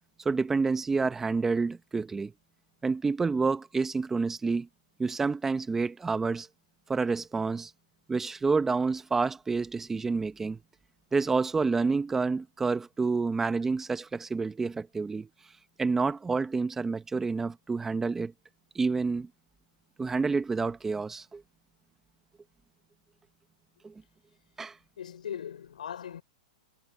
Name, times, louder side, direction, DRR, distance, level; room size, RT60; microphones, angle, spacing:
voice 1, 0.2-2.3 2.8-4.7 5.0-6.5 6.9-7.7 8.1-10.6 11.1-15.3 15.8-18.3 18.7-19.3 20.0-21.4 23.8-23.9 24.6-24.7, right 4 dB, 10° right, 1.1 m, -28 dB
voice 2, 25.0-26.2, left 9 dB, 90° left, 6.0 m, -39 dB
hypercardioid pair, 150°, 4 cm